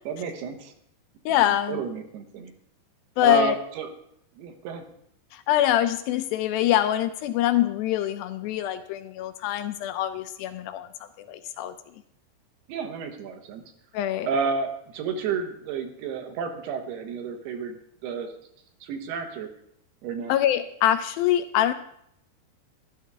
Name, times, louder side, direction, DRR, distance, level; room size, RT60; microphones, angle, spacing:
voice 1, 0.1-0.7 1.7-2.5 3.2-3.9 4.4-4.8 12.7-13.6 14.2-17.8 18.0-18.3 18.8-19.5 20.0-20.3, right 5 dB, 75° right, 5 dB, 3.1 m, -31 dB
voice 2, 1.3-1.8 3.2-3.6 5.3-11.7 13.9-14.3 20.3-21.7, left 12 dB, 85° left, 10 dB, 2.1 m, -24 dB
12.5 x 12.0 x 3.6 m, 0.71 s
omnidirectional pair, 4.8 m